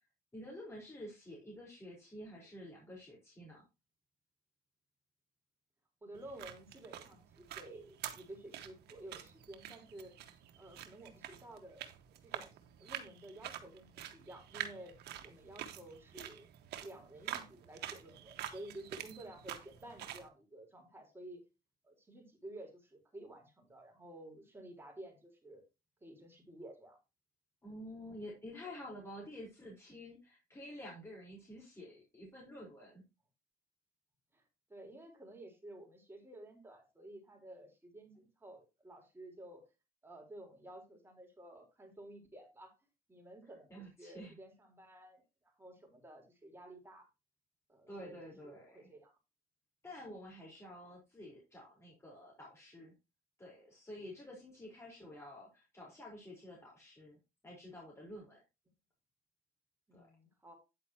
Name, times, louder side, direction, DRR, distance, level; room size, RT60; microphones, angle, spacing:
voice 1, 0.3-3.6 27.6-33.0 43.4-44.4 47.9-48.9 49.8-52.9 53.4-57.2 57.4-58.4 59.9-60.1, left 1 dB, 15° left, -3 dB, 4.5 m, -50 dB
voice 2, 6.0-10.1 10.5-11.9 12.2-12.5 12.8-14.9 15.2-16.5 16.8-21.4 21.8-25.6 26.0-27.0 34.3-34.4 34.7-39.6 40.0-42.7 43.1-47.1 47.7-49.1 59.9-60.5, right 1 dB, 15° right, 1 dB, 4.2 m, -52 dB
sound 1, 6.1-20.3, right 11 dB, 75° right, 1.5 m, -47 dB
9.7 x 8.3 x 2.9 m, 0.25 s
cardioid pair, 110°, 17 cm